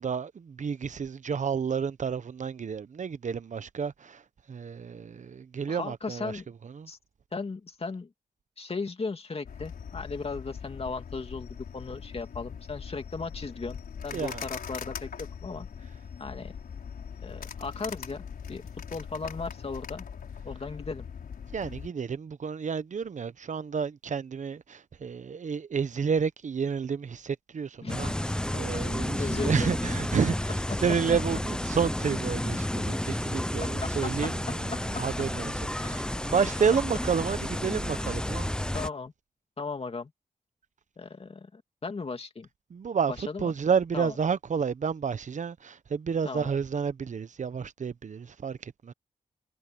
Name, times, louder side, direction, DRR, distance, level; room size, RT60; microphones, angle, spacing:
voice 1, 0.0-4.2 4.5-6.3 6.6-6.9 14.1-14.4 21.5-28.1 28.6-35.5 35.8-38.5 42.7-43.1 43.4-48.9, right 6 dB, 55° right, 1.0 m, -30 dB
voice 2, 5.7-6.5 6.9-7.0 7.3-8.1 8.6-13.8 14.0-15.9 16.2-16.5 17.2-18.6 18.9-20.0 20.4-21.1 27.8-28.0 28.7-28.8 29.2-29.8 30.3-30.4 30.7-30.8 33.6-34.3 34.7-34.8 35.8-35.9 36.7-37.0 37.6-37.8 38.7-39.1 39.6-40.1 41.0-42.5 43.1-43.5 43.9-44.2 46.2-46.5, left 4 dB, 40° left, 2.7 m, -36 dB
sound 1, 9.5-21.9, left 7 dB, 75° left, 5.0 m, -41 dB
sound 2, 27.9-38.9, left 1 dB, 5° left, 0.7 m, -31 dB
cardioid pair, 75°, 15 cm